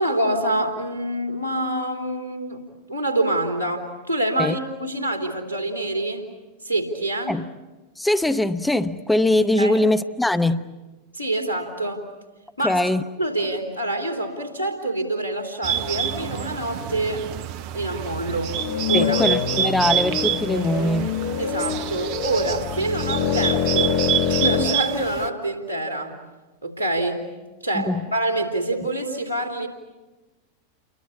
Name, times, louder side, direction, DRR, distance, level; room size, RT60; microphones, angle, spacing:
voice 1, 0.0-2.6 2.9-6.3 6.6-7.3 9.6-9.8 11.1-12.1 12.6-12.8 13.2-17.3 17.7-18.6 18.9-19.2 21.4-26.1 26.6-27.2 27.6-29.7, right 1 dB, 85° left, 3.3 m, -26 dB
voice 2, 8.0-10.7 12.6-13.0 18.9-21.2 27.7-28.0, left 1 dB, 5° left, 0.9 m, -22 dB
Bird, 15.6-25.3, right 9 dB, 45° right, 1.0 m, -27 dB
sound 1, 18.5-24.7, left 7 dB, 45° left, 1.4 m, -25 dB
29.5 x 23.5 x 8.3 m
figure-of-eight pair, 90°, 0 cm